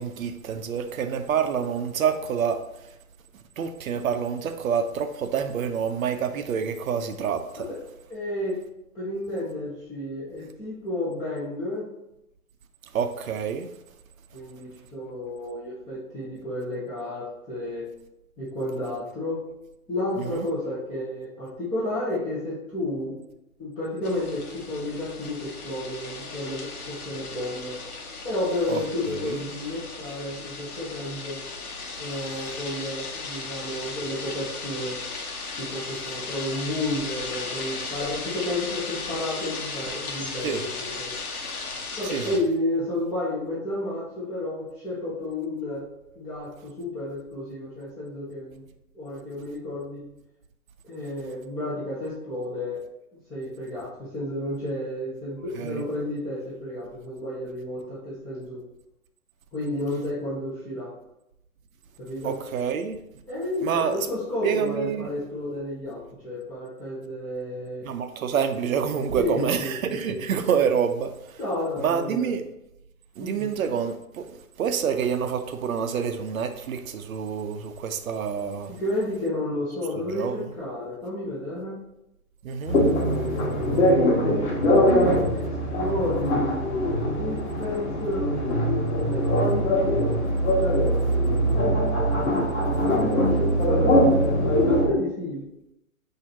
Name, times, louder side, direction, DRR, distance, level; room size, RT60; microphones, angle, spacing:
voice 1, 0.0-2.6 3.6-7.7 12.9-13.7 20.2-20.5 28.7-29.4 40.4-40.6 42.1-42.4 55.5-55.9 62.2-63.0 63.6-64.1 64.4-65.1 67.8-71.4 71.8-72.4 73.2-78.7 80.1-80.5 82.4-82.8, right 7 dB, 65° right, 0.6 m, -27 dB
voice 2, 8.1-8.6 8.9-11.9 14.3-17.9 18.4-19.4 19.9-23.2 23.6-27.8 28.2-31.4 32.0-35.0 35.6-41.1 42.0-45.9 46.1-48.6 48.9-50.0 50.8-52.8 53.3-58.6 59.5-60.9 62.0-62.4 63.3-67.9 69.2-69.8 70.1-70.2 71.4-72.3 73.2-73.4 78.8-81.8 83.3-84.0 84.9-85.4 85.7-86.7 87.2-88.2 89.0-89.7 90.9-92.0 92.6-92.7 93.0-95.4, left 1 dB, 10° left, 0.9 m, -31 dB
sound 1, 24.0-42.4, left 4 dB, 75° left, 1.0 m, -36 dB
sound 2, 82.7-94.9, equal, 50° left, 1.4 m, -22 dB
6.0 x 2.7 x 2.9 m
hypercardioid pair, 140°, 44 cm